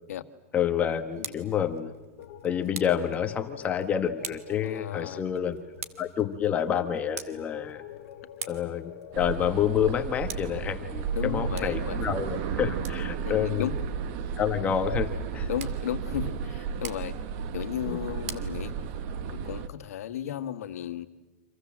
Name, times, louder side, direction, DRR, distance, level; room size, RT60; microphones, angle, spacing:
voice 1, 0.5-1.9 2.4-5.6 6.0-7.8 8.5-13.7 14.4-15.5, left 9 dB, 20° left, 7 dB, 1.3 m, -28 dB
Tick, 0.9-19.3, right 9 dB, 70° right, 2.2 m, -47 dB
voice 2, 1.2-1.5 4.6-5.2 11.1-12.0 13.2-13.8 15.5-17.2 17.5-18.7 19.3-21.1, left 11 dB, 80° left, 10 dB, 1.8 m, -34 dB
sound 1, 2.2-12.3, left 10 dB, 60° left, 2.1 m, -46 dB
sound 2, 9.1-19.7, right 6 dB, 40° right, 1.5 m, -33 dB
29.5 x 26.5 x 7.5 m, 1.1 s
supercardioid pair, 160°, 8 cm